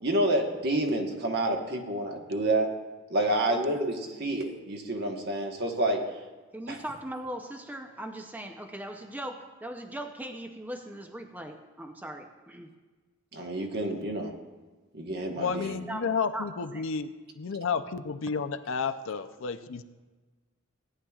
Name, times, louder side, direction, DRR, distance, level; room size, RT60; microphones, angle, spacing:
voice 1, 0.0-2.7 3.1-6.0 6.7-6.8 13.3-14.3 14.9-15.8, right 1 dB, 50° right, 2 dB, 1.3 m, -28 dB
voice 2, 6.5-12.7 15.9-16.0 16.3-16.5 16.7-16.8, right 1 dB, 10° right, 5 dB, 0.6 m, -39 dB
voice 3, 15.3-17.1 17.4-19.8, left 5 dB, 65° left, 9 dB, 0.5 m, -31 dB
17.5 x 10.0 x 2.4 m, 1.3 s
head